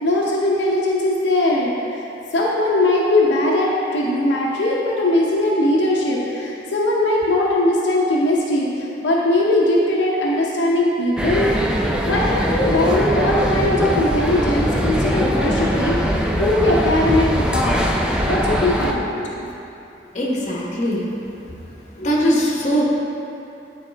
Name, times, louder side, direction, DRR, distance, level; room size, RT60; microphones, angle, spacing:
voice 1, 0.0-2.1 2.3-11.5 12.1-17.8 18.1-19.5, left 1 dB, 75° left, -4 dB, 0.7 m, -20 dB
sound 1, 11.2-18.9, equal, 5° right, 0.3 m, -21 dB
voice 2, 20.1-21.0 22.0-22.8, equal, 40° left, -4 dB, 1.0 m, -20 dB
8.9 x 4.2 x 3.3 m, 2.9 s
head